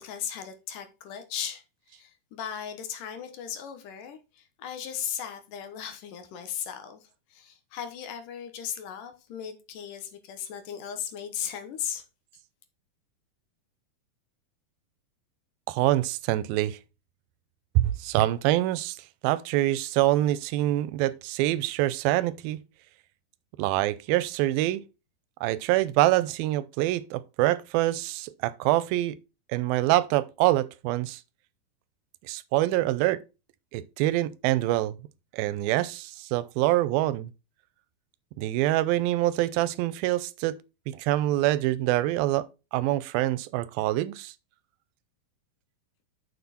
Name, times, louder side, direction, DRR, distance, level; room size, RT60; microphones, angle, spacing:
voice 1, 0.0-1.6 1.9-7.0 7.3-12.0, left 9 dB, 70° left, 2.6 m, -37 dB
voice 2, 15.7-16.8 17.8-19.0 19.2-22.6 23.6-24.8 25.4-29.2 29.5-31.2 32.2-33.2 33.7-35.0 35.3-37.3 38.4-40.6 40.9-42.5 42.7-44.3, right 15 dB, 85° right, 2.4 m, -25 dB
7.0 x 6.8 x 4.1 m
omnidirectional pair, 4.1 m